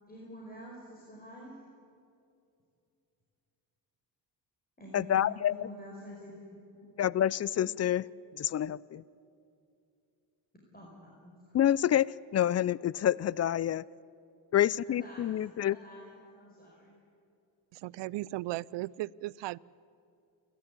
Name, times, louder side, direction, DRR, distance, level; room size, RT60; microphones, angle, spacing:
voice 1, 0.1-1.6 4.8-6.4 6.7-6.9 7.6-7.7 10.7-11.5 14.8-16.9, equal, 20° left, -3 dB, 5.0 m, -48 dB
voice 2, 4.9-5.7 7.0-8.0 8.3-9.0 11.5-13.8 14.5-15.8, left 11 dB, 35° left, 23 dB, 0.4 m, -28 dB
voice 3, 17.7-19.6, right 18 dB, 70° right, 24 dB, 0.5 m, -36 dB
27.5 x 12.0 x 8.4 m, 2.6 s
cardioid pair, 80°, 45 cm